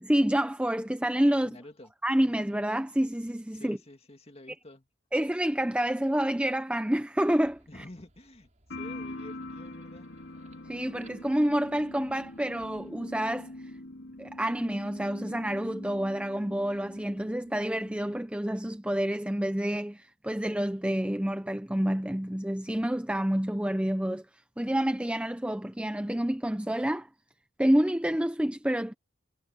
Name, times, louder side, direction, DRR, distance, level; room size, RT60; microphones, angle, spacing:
voice 1, 0.0-1.5 2.0-3.8 5.1-7.6 10.7-13.5 14.2-24.2 24.6-27.1 27.6-28.9, right 1 dB, 5° right, 0.6 m, -28 dB
voice 2, 1.3-1.9 3.5-4.9 7.7-10.1, left 1 dB, 30° left, 2.1 m, -49 dB
sound 1, 7.4-12.9, right 2 dB, 35° right, 5.1 m, -63 dB
sound 2, 8.7-18.2, left 1 dB, 60° left, 2.8 m, -44 dB
head